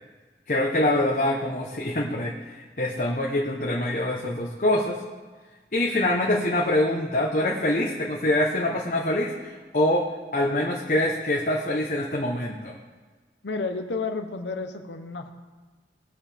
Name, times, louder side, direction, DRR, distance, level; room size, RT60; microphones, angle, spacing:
voice 1, 0.5-5.0 5.7-10.0 10.3-12.7, left 1 dB, 45° left, -2 dB, 1.0 m, -25 dB
voice 2, 13.4-15.3, left 4 dB, 85° left, 6 dB, 0.9 m, -31 dB
19.5 x 7.4 x 3.5 m, 1.4 s
head